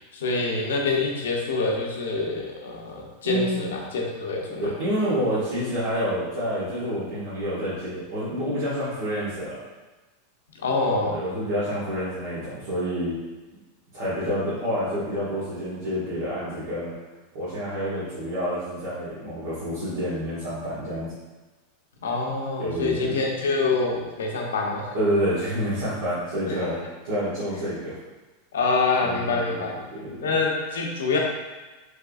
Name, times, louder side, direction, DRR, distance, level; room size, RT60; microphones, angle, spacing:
voice 1, 0.1-4.7 10.6-11.2 22.0-24.9 26.5-26.6 28.5-29.7 30.2-31.2, left 3 dB, 90° left, 0 dB, 0.7 m, -26 dB
voice 2, 3.2-3.6 4.6-9.6 11.1-13.2 13.9-16.9 17.3-21.1 22.6-23.2 24.9-26.8 27.0-27.9 29.0-30.3, equal, 75° right, -13 dB, 1.5 m, -28 dB
3.5 x 3.2 x 2.4 m, 1.2 s
hypercardioid pair, 120°, 0 cm